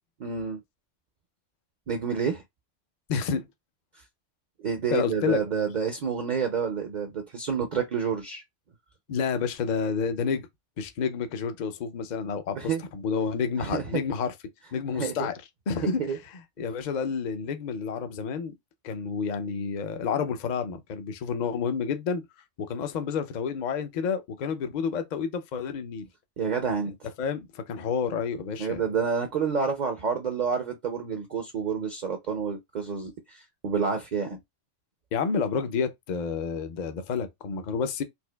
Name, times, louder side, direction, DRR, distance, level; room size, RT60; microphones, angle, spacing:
voice 1, 0.2-0.6 1.9-2.4 4.6-8.4 12.6-12.8 13.6-13.8 14.9-15.3 15.8-16.2 26.4-27.1 28.6-34.4, right 6 dB, 50° right, 0.6 m, -29 dB
voice 2, 3.1-3.5 4.9-5.4 9.1-10.5 10.8-14.3 14.7-15.4 15.7-16.0 16.6-18.5 18.8-22.2 22.6-26.1 27.2-28.8 35.1-38.0, left 6 dB, 50° left, 0.6 m, -29 dB
4.3 x 2.4 x 2.2 m
omnidirectional pair, 1.2 m